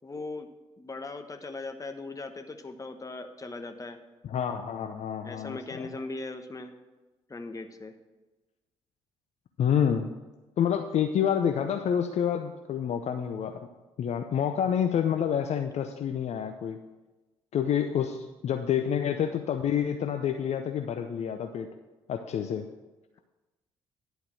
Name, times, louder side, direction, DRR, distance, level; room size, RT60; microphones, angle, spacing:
voice 1, 0.0-0.5 0.8-4.0 5.2-6.7 7.3-7.9, left 3 dB, 25° left, 7 dB, 1.1 m, -39 dB
voice 2, 4.2-5.9 9.6-10.1 10.6-13.7 14.0-16.8 17.5-21.7 22.1-22.7, left 8 dB, 50° left, 6 dB, 0.6 m, -28 dB
11.0 x 4.6 x 7.6 m, 1.1 s
hypercardioid pair, 45°, 14 cm